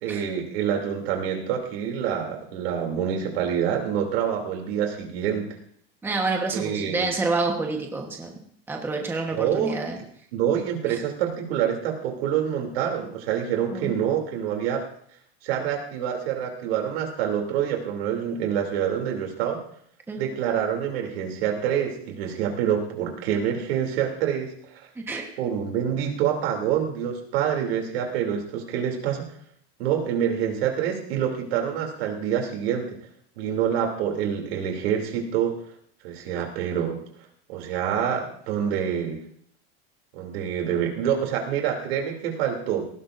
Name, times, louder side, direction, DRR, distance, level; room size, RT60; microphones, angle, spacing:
voice 1, 0.0-5.5 6.5-7.1 9.3-9.8 10.3-14.8 15.4-19.6 20.2-24.9 25.4-29.2 29.8-33.0 33.4-35.6 36.0-37.0 37.5-39.2 40.1-42.8, right 9 dB, 75° right, 2 dB, 3.0 m, -26 dB
voice 2, 6.0-8.3 8.7-10.0 10.9-11.0 13.7-13.9 20.1-20.2 25.0-25.3, right 3 dB, 5° right, 2 dB, 1.2 m, -28 dB
18.5 x 16.0 x 2.6 m, 0.65 s
supercardioid pair, 165°, 31 cm